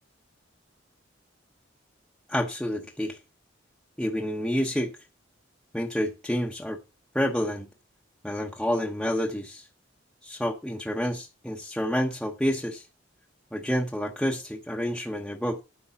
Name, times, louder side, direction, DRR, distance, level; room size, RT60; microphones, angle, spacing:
voice 1, 2.3-3.2 4.0-4.9 5.7-6.8 7.1-7.7 8.2-9.7 10.2-12.9 13.5-15.6, equal, 5° left, 1.0 m, -29 dB
10.0 x 6.3 x 5.8 m
head